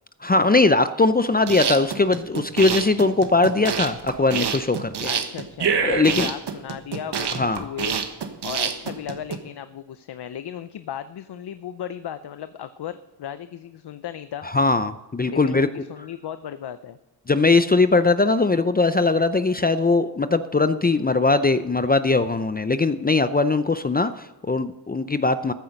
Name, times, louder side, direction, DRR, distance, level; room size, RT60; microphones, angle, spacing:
voice 1, 0.2-4.9 5.8-6.3 7.4-7.7 14.5-15.7 17.3-25.5, left 3 dB, 25° left, 11 dB, 0.5 m, -20 dB
sound 1, 1.3-9.4, right 6 dB, 75° right, 1.3 m, -27 dB
voice 2, 5.0-8.0 8.4-14.5 15.2-17.0, left 9 dB, 70° left, 12 dB, 0.7 m, -36 dB
14.5 x 9.4 x 5.3 m, 1.0 s
wide cardioid pair, 105°, 41 cm